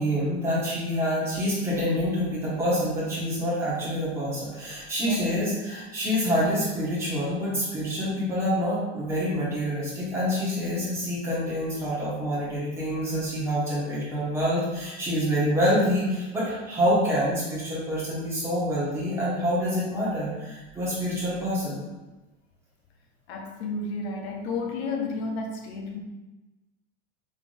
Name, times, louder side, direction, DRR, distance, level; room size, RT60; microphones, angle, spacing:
voice 1, 0.0-21.8, equal, 5° right, -9 dB, 1.3 m, -27 dB
voice 2, 5.1-5.6 23.3-26.0, left 3 dB, 50° left, 2 dB, 0.6 m, -32 dB
5.1 x 3.7 x 2.5 m, 1.1 s
supercardioid pair, 170°, 41 cm